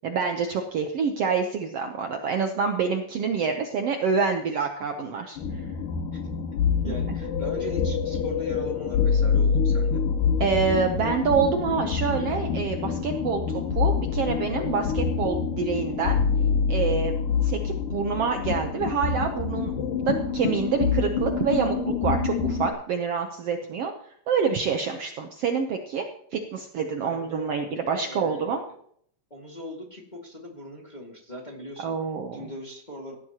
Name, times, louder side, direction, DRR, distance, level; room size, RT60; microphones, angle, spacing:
voice 1, 0.0-5.4 6.8-6.9 10.4-16.2 16.7-17.1 17.4-19.7 20.1-21.8 22.0-23.9 24.3-26.1 26.3-28.6 31.8-32.5, right 5 dB, 90° right, 4 dB, 1.3 m, -27 dB
sound 1, 5.4-22.7, left 6 dB, 70° left, 2.6 m, -26 dB
voice 2, 6.8-10.0 27.0-27.5 28.0-28.6 29.3-31.9 32.3-33.2, equal, 15° left, -1 dB, 1.5 m, -39 dB
17.0 x 13.0 x 3.0 m, 0.65 s
omnidirectional pair, 4.2 m